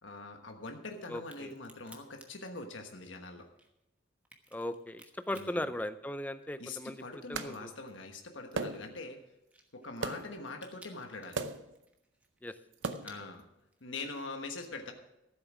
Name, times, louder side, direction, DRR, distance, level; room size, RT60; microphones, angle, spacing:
voice 1, 0.0-3.5 5.3-5.6 6.6-9.2 9.7-11.4 13.0-13.5 13.8-14.9, left 3 dB, 85° left, 4 dB, 1.3 m, -43 dB
voice 2, 1.1-1.5 4.5-7.0 7.3-7.7 12.4-12.5, left 1 dB, 10° left, 11 dB, 0.5 m, -38 dB
Crack, 1.2-6.7 7.0-14.0, right 1 dB, 10° right, 1.1 m, -58 dB
sound 1, 7.3-7.6 8.6-9.1 10.0-10.4 11.3-11.8 12.7-13.3, right 4 dB, 80° right, 0.7 m, -37 dB
14.0 x 8.0 x 6.1 m, 0.89 s
head